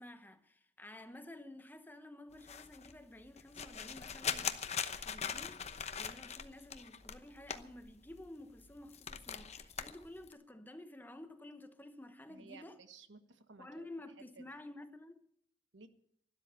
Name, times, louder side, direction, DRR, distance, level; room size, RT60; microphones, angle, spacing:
voice 1, 0.0-5.7 6.0-12.8 13.6-15.3, left 1 dB, 10° left, 0.9 m, -52 dB
sound 1, 2.3-8.3 8.6-10.3, left 7 dB, 35° left, 0.9 m, -41 dB
voice 2, 12.3-13.9 14.4-14.5 15.7-15.9, right 4 dB, 90° right, 1.4 m, -56 dB
12.5 x 12.5 x 6.8 m
head